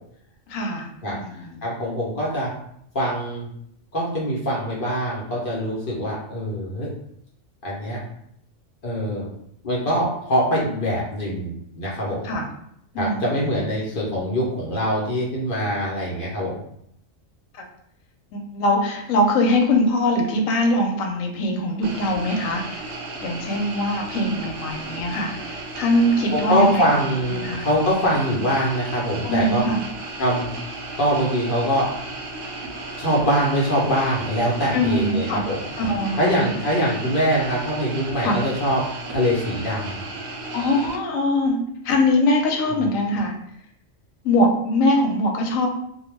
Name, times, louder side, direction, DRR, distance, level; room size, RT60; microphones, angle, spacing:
voice 1, 0.5-1.7 12.2-12.5 12.9-13.6 18.3-22.9 23.2-27.0 27.4-27.6 29.2-29.8 34.7-35.4 35.8-36.5 38.2-38.4 40.5-41.6 41.8-43.3 44.2-45.7, left 1 dB, 90° left, 1 dB, 1.0 m, -22 dB
voice 2, 1.0-2.5 2.9-3.5 3.9-6.9 7.6-8.0 8.8-9.3 9.6-12.2 13.0-16.5 26.3-29.6 30.2-30.5 31.0-31.9 33.0-35.6 36.2-38.8 39.1-40.0 42.7-42.9, equal, 50° left, -5 dB, 0.8 m, -23 dB
sound 1, 21.8-41.0, right 2 dB, 75° right, 0.9 m, -34 dB
2.2 x 2.2 x 3.1 m, 0.72 s
omnidirectional pair, 1.3 m